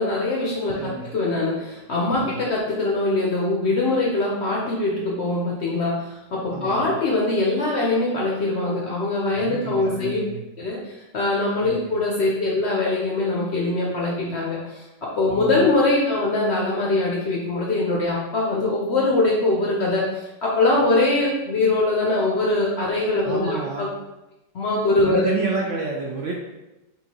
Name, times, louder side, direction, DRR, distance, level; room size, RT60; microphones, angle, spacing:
voice 1, 0.0-10.2 10.6-20.1 20.4-23.9 24.5-25.3, left 2 dB, 60° left, -3 dB, 0.7 m, -22 dB
voice 2, 0.7-1.2 2.2-2.4 6.5-7.0 9.4-10.4 11.6-12.0 15.3-15.6 23.2-23.9 25.0-26.3, right 4 dB, 70° right, -2 dB, 0.7 m, -30 dB
5.6 x 2.4 x 2.8 m, 0.98 s
omnidirectional pair, 1.7 m